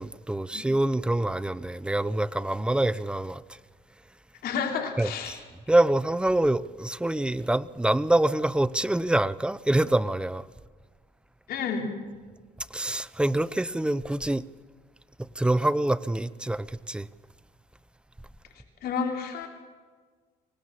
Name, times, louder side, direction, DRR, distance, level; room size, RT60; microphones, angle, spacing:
voice 1, 0.0-3.4 5.0-5.4 5.7-10.5 12.7-14.5 15.2-17.1, right 1 dB, 5° right, 0.6 m, -25 dB
voice 2, 4.4-5.4 11.5-11.9 18.8-19.5, left 6 dB, 65° left, 3.6 m, -30 dB
24.5 x 18.5 x 7.5 m
cardioid pair, 110°, 17 cm